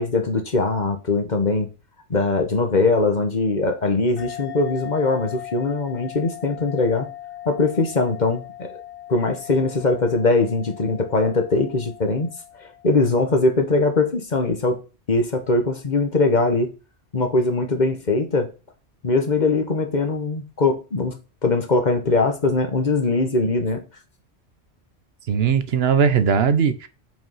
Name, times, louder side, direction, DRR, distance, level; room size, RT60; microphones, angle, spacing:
voice 1, 0.0-1.7 2.1-7.1 7.5-8.7 9.1-12.3 12.8-14.8 15.1-16.7 17.1-18.5 19.0-23.8, left 3 dB, 45° left, 1.3 m, -21 dB
sound 1, 4.2-13.2, left 12 dB, 85° left, 1.5 m, -39 dB
voice 2, 25.3-26.9, right 6 dB, 65° right, 0.9 m, -19 dB
5.8 x 5.3 x 5.5 m
omnidirectional pair, 1.1 m